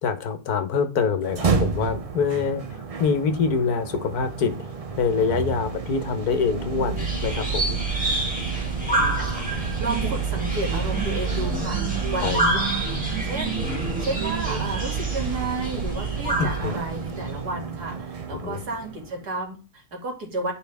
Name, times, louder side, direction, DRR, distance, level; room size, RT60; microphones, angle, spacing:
voice 1, 0.0-4.5 5.0-7.8 12.2-12.3 16.4-16.7 18.3-18.6, left 5 dB, 75° left, 9 dB, 1.6 m, -25 dB
sound 1, 1.2-19.3, right 6 dB, 40° right, 0.5 m, -30 dB
sound 2, 7.0-17.3, right 1 dB, 5° right, 3.1 m, -29 dB
voice 2, 8.8-12.6 13.2-20.5, right 2 dB, 85° right, 0 dB, 3.2 m, -32 dB
sound 3, 9.5-14.9, right 6 dB, 60° right, 1.7 m, -34 dB
11.5 x 5.2 x 3.5 m, 0.31 s
omnidirectional pair, 1.7 m